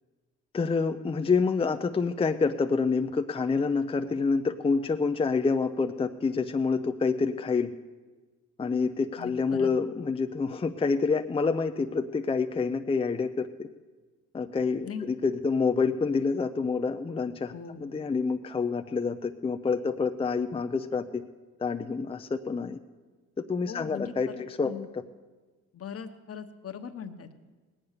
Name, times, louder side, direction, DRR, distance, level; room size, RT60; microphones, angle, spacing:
voice 1, 0.5-7.7 8.6-13.7 14.3-21.2 21.6-22.8 23.5-24.3 24.6-24.7, left 4 dB, 20° left, 6 dB, 0.5 m, -27 dB
voice 2, 9.2-9.7 14.8-15.0 17.5-17.8 23.7-24.9 25.7-27.4, left 7 dB, 50° left, 7 dB, 1.2 m, -40 dB
18.5 x 8.8 x 6.6 m, 1.3 s
cardioid pair, 90°, 30 cm